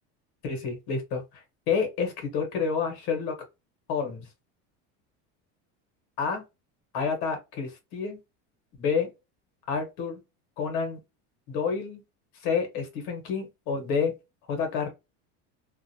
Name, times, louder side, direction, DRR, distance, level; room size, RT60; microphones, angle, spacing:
voice 1, 0.4-3.4 3.9-4.3 6.2-6.4 6.9-8.2 8.8-9.1 9.7-10.2 10.6-11.0 11.5-12.0 12.4-14.1 14.5-14.9, left 5 dB, 70° left, 1.3 m, -29 dB
2.5 x 2.0 x 2.7 m
cardioid pair, 140°, 34 cm